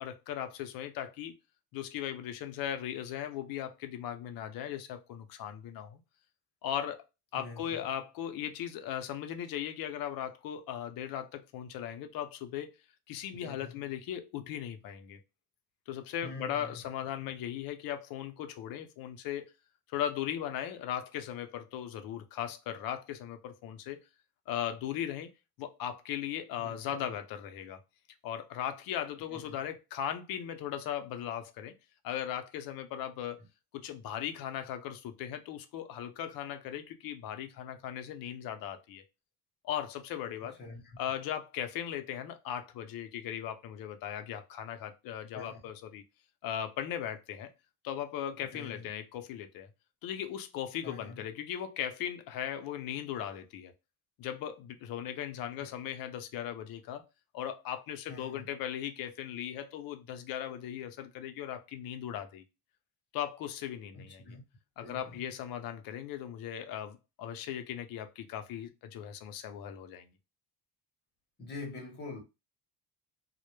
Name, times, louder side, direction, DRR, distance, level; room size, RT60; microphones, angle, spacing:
voice 1, 0.0-1.3 1.7-6.0 6.6-7.0 7.3-12.7 13.1-15.2 15.9-19.5 19.9-24.0 24.5-25.3 25.6-27.8 28.2-31.7 32.0-33.4 33.7-39.0 39.6-40.6 41.0-46.0 46.4-47.5 47.8-49.7 50.0-53.7 54.2-57.0 57.3-62.4 63.1-64.4 64.8-70.1, left 10 dB, 60° left, 0.5 m, -38 dB
voice 2, 7.3-7.9 13.3-13.8 16.2-16.8 17.2-17.3 26.6-27.1 29.3-29.6 40.6-41.0 45.3-45.6 48.5-48.9 50.8-51.2 55.6-55.7 58.1-58.5 63.9-64.4 64.8-65.3 71.4-72.2, left 3 dB, 25° left, 0.8 m, -45 dB
2.1 x 2.0 x 3.0 m
cardioid pair, 175°, 40 cm